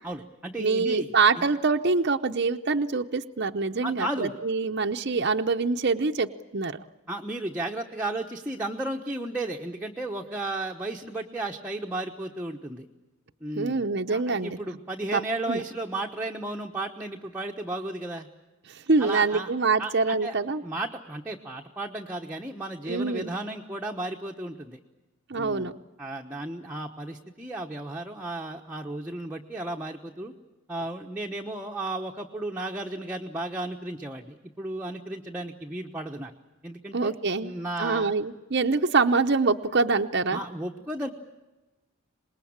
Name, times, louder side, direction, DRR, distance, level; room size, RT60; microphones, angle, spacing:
voice 1, 0.0-1.5 3.8-4.4 7.1-12.9 13.4-18.3 19.0-19.5 19.8-20.3 20.6-24.8 25.3-25.7 26.0-30.3 30.7-36.3 36.6-37.1 37.4-38.1 40.3-41.1, right 2 dB, 10° right, -1 dB, 1.1 m, -34 dB
voice 2, 0.6-6.8 13.6-14.6 15.1-15.2 15.5-15.6 18.7-20.6 22.9-23.3 25.3-25.7 36.9-37.5 37.8-40.4, right 4 dB, 50° right, 5 dB, 0.8 m, -25 dB
26.0 x 20.5 x 8.7 m, 1.1 s
head